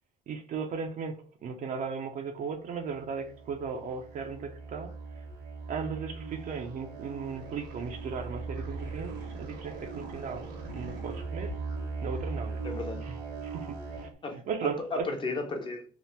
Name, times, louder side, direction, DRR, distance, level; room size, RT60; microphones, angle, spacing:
voice 1, 0.3-5.2 5.7-11.6 12.0-12.6 13.1-13.2 13.4-15.1, right 5 dB, 50° right, 0.5 m, -37 dB
sound 1, 2.7-14.1, right 4 dB, 75° right, 1.0 m, -39 dB
voice 2, 12.6-13.0 14.2-15.8, left 3 dB, 30° left, 0.6 m, -34 dB
2.8 x 2.0 x 3.2 m
cardioid pair, 110°, 17 cm